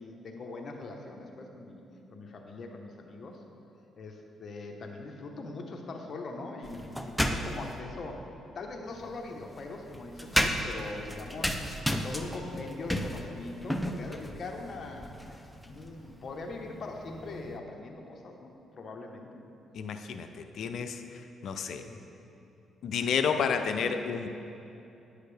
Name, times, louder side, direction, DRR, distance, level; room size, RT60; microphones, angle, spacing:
voice 1, 0.0-1.8 2.1-3.4 4.0-8.3 8.5-11.6 11.9-15.1 15.6-19.3 21.8-22.0, left 3 dB, 45° left, 2 dB, 0.9 m, -41 dB
sound 1, 6.6-7.8 8.9-17.6, equal, ahead, 0.5 m, -34 dB
voice 2, 19.7-21.0 21.4-21.8 22.8-24.3, left 6 dB, 65° left, 7 dB, 0.4 m, -30 dB
9.8 x 6.5 x 3.3 m, 2.8 s
cardioid pair, 90°, 0 cm